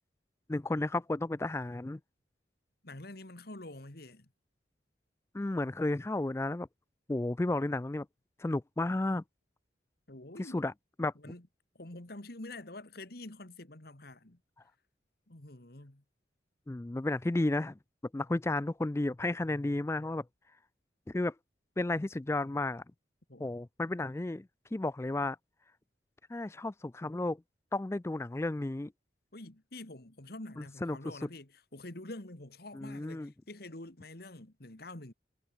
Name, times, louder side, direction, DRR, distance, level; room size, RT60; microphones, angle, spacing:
voice 1, 0.5-2.0 5.3-6.7 7.1-8.1 8.4-9.2 10.4-10.7 11.0-11.1 16.7-17.8 18.1-20.2 21.1-21.3 21.8-22.8 23.4-25.4 26.3-27.4 27.7-28.9 30.6-31.0 32.7-33.3, left 2 dB, 15° left, 0.3 m, -33 dB
voice 2, 2.8-4.3 10.1-10.6 11.2-11.5 11.7-14.4 15.3-16.0 23.3-23.5 29.3-35.1, left 2 dB, 55° left, 2.2 m, -47 dB
head